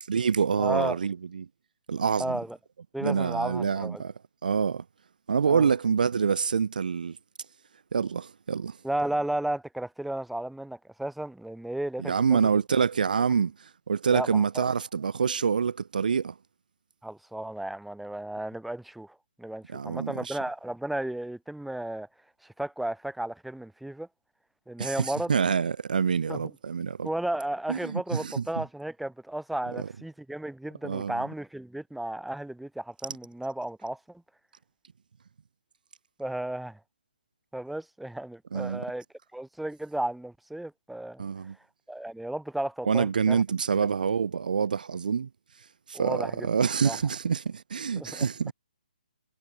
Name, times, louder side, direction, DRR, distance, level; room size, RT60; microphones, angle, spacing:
voice 1, 0.1-1.5 1.9-2.4 3.0-4.1 4.4-4.8 5.3-7.2 7.9-8.8 12.0-16.3 19.7-20.4 24.8-27.1 27.7-28.4 29.8-29.9 30.8-31.2 38.5-38.8 41.2-41.5 42.8-45.3 45.9-48.5, right 6 dB, 65° right, 1.6 m, -26 dB
voice 2, 0.6-1.0 2.2-2.6 2.9-4.0 5.4-5.7 8.8-12.5 14.1-14.7 17.0-22.1 22.4-24.1 24.7-25.3 26.3-26.4 27.0-34.2 36.2-36.8 37.5-39.0 39.3-41.2 41.9-43.4 45.9-46.5 46.8-47.0 48.0-48.3, right 1 dB, ahead, 2.8 m, -34 dB
hypercardioid pair, 155°, 5 cm